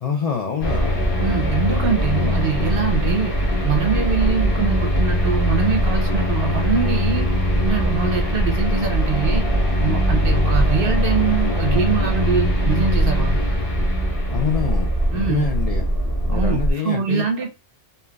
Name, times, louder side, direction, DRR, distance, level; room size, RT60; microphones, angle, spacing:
voice 1, 0.0-1.0 14.3-15.8 16.3-17.3, left 6 dB, 65° left, 0.3 m, -26 dB
sound 1, 0.6-16.7, equal, 50° left, 1.1 m, -21 dB
voice 2, 1.2-7.3 7.6-9.5 9.8-13.4 15.1-15.4 16.3-17.5, right 6 dB, 60° right, 0.8 m, -23 dB
3.7 x 2.7 x 2.3 m
omnidirectional pair, 1.2 m